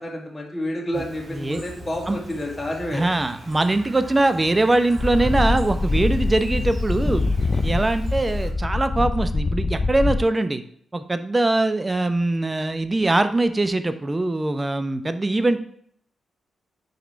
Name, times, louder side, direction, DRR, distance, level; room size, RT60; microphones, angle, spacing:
voice 1, 0.0-3.1, left 1 dB, 25° left, -1 dB, 1.8 m, -29 dB
Chirp tweet, 0.9-8.5, right 2 dB, 60° right, 2.4 m, -41 dB
voice 2, 1.3-1.6 2.1-2.2 2.9-7.2 7.6-10.6 10.9-15.6, right 2 dB, 25° right, 10 dB, 0.6 m, -22 dB
sound 1, 5.0-10.2, left 3 dB, 40° left, 0.3 m, -24 dB
5.1 x 4.8 x 4.5 m, 0.65 s
cardioid pair, 60°, 0 cm